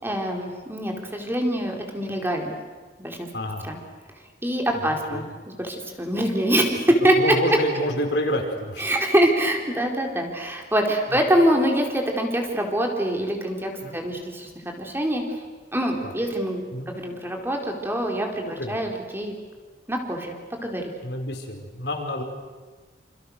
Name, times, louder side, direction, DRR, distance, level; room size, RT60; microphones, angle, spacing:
voice 1, 0.0-2.6 3.0-3.3 3.6-3.8 4.4-5.3 5.6-7.2 8.8-15.2 15.7-16.6 16.9-19.4 19.9-20.9, right 1 dB, 15° right, 2 dB, 4.2 m, -24 dB
voice 2, 3.3-3.7 4.8-5.2 7.2-9.0 11.1-11.2 13.8-14.0 16.0-16.1 16.7-16.9 18.4-18.8 21.0-22.2, left 1 dB, 70° left, 2 dB, 5.1 m, -28 dB
29.0 x 28.0 x 6.5 m, 1.4 s
head